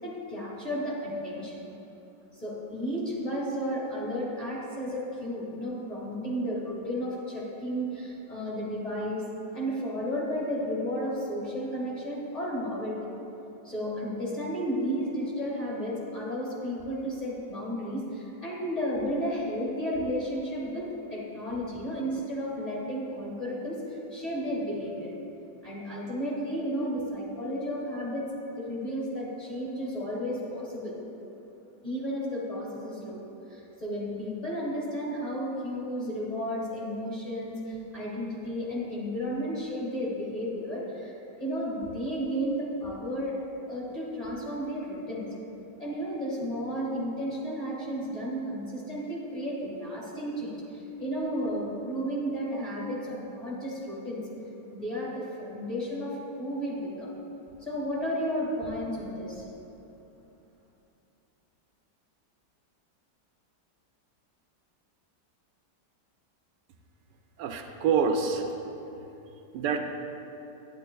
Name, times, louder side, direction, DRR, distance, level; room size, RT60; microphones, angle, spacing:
voice 1, 0.0-1.6 2.3-9.2 9.5-13.0 13.6-25.1 25.6-28.3 28.5-30.9 31.8-33.2 33.5-43.3 43.7-45.3 45.8-54.2 54.7-57.1 57.6-59.4, equal, 20° left, -7 dB, 1.8 m, -33 dB
voice 2, 67.4-68.5 68.9-69.1 69.5-69.8, right 6 dB, 80° right, 4 dB, 1.2 m, -26 dB
9.8 x 9.5 x 2.2 m, 2.9 s
omnidirectional pair, 1.9 m